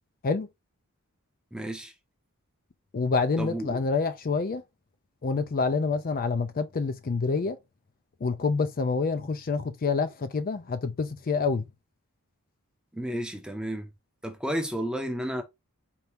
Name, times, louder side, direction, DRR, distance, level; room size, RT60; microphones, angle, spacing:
voice 1, 1.5-1.9 3.4-3.8 12.9-13.9 14.2-15.4, equal, 5° right, 0.7 m, -32 dB
voice 2, 2.9-4.6 5.2-7.6 8.2-11.6, left 4 dB, 40° left, 0.5 m, -27 dB
4.4 x 2.7 x 3.5 m
head